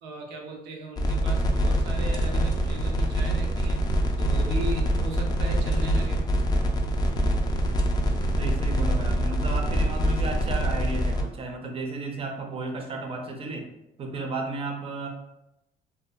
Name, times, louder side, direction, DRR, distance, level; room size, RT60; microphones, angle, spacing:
voice 1, 0.0-3.8 4.2-6.2 14.1-14.4, right 2 dB, 85° right, 1 dB, 0.6 m, -37 dB
sound 1, 1.0-11.2, right 1 dB, 25° left, 0.3 m, -24 dB
voice 2, 8.4-13.7 14.0-15.1, right 3 dB, 35° right, 3 dB, 0.5 m, -33 dB
2.6 x 2.3 x 2.3 m, 0.89 s
cardioid pair, 110°, 17 cm